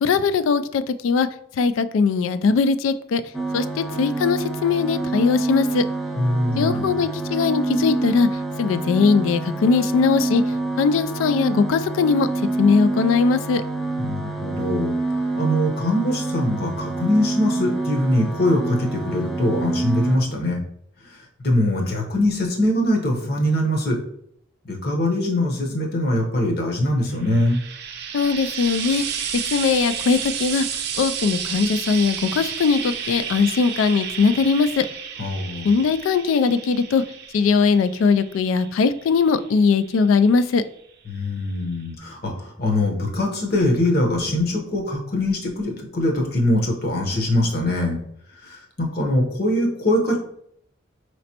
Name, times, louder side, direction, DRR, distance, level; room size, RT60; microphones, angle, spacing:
voice 1, 0.0-1.3 1.6-3.2 3.5-5.8 6.6-8.3 8.6-10.4 10.8-12.3 12.6-13.6 28.1-29.0 29.5-30.7 31.0-34.9 35.6-37.0 37.3-40.6, left 5 dB, 80° left, 13 dB, 0.3 m, -20 dB
sound 1, 3.3-20.2, right 2 dB, ahead, 0.4 m, -27 dB
voice 2, 6.2-6.9 14.0-14.9 15.4-20.6 21.4-24.0 24.6-27.6 35.2-35.7 41.1-48.0 48.4-50.2, left 1 dB, 50° left, 1 dB, 0.9 m, -22 dB
Frying (food), 27.1-40.5 41.5-41.6, right 7 dB, 55° right, 0.5 m, -32 dB
5.0 x 3.1 x 2.8 m, 0.71 s
head